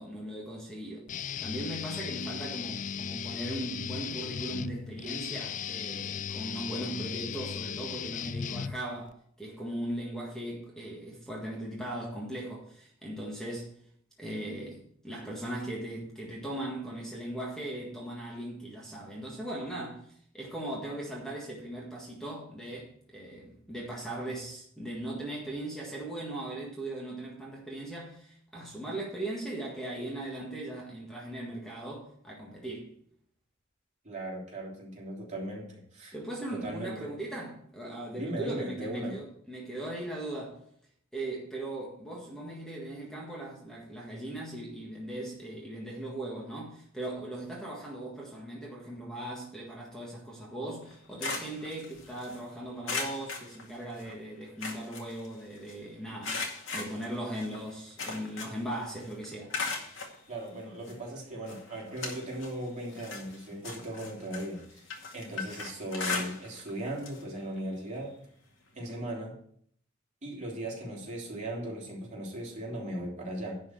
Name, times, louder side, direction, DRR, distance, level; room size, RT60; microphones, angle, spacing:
voice 1, 0.0-13.7 14.2-32.9 36.1-40.6 41.1-59.5, right 1 dB, 5° left, 1.7 m, -39 dB
Guitar, 1.1-9.1, left 8 dB, 40° left, 0.3 m, -37 dB
voice 2, 34.0-36.1 36.5-37.1 38.1-39.1 60.3-64.9 65.1-68.1 68.7-69.4 70.2-73.6, right 1 dB, 40° right, 3.5 m, -38 dB
sound 1, 50.8-52.4 52.8-54.1 54.4-55.7 56.2-58.7 59.0-60.2 60.9-61.0 61.5-62.6 62.9-66.7 67.0-67.2 67.6-67.7 68.9-69.0, left 4 dB, 70° left, 2.2 m, -37 dB
11.0 x 4.5 x 7.6 m
head